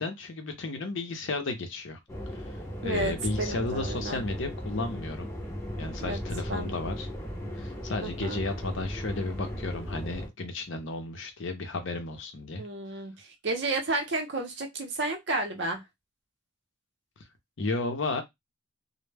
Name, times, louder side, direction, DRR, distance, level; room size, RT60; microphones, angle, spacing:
voice 1, 0.0-2.0 2.3-2.4 2.8-5.3 5.8-7.1 7.6-12.6 17.6-18.2, left 3 dB, 65° left, 0.6 m, -33 dB
sound 1, 2.1-10.3, equal, 15° left, 0.6 m, -37 dB
voice 2, 2.8-4.2 6.0-6.2 6.5-6.8 8.0-8.4 12.6-15.8, right 2 dB, 55° right, 0.7 m, -32 dB
2.1 x 2.1 x 3.2 m
head